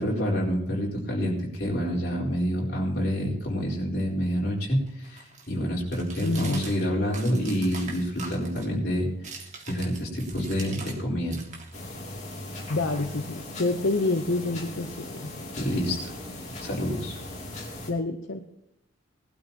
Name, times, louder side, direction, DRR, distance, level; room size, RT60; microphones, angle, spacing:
voice 1, 0.0-9.1 9.7-11.4 15.6-16.2 16.6-17.2, equal, 50° left, -3 dB, 4.0 m, -28 dB
sound 1, 3.6-11.0 11.3-13.5, right 4 dB, 35° right, 1.9 m, -44 dB
voice 2, 6.2-6.6 12.7-15.3 17.9-18.4, left 2 dB, 70° left, 5 dB, 0.8 m, -27 dB
sound 2, 11.7-17.9, left 1 dB, 35° left, 2.7 m, -39 dB
19.0 x 12.5 x 2.9 m, 0.78 s
head